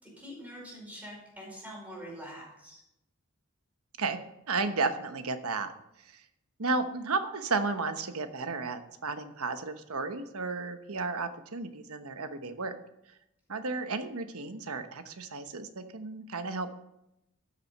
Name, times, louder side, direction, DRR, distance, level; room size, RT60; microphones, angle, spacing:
voice 1, 0.0-2.8, equal, 5° right, -3 dB, 4.9 m, -45 dB
voice 2, 4.5-5.7 6.0-6.2 6.6-12.8 13.5-16.8, right 3 dB, 85° right, 9 dB, 1.1 m, -33 dB
13.0 x 7.6 x 5.4 m, 0.84 s
head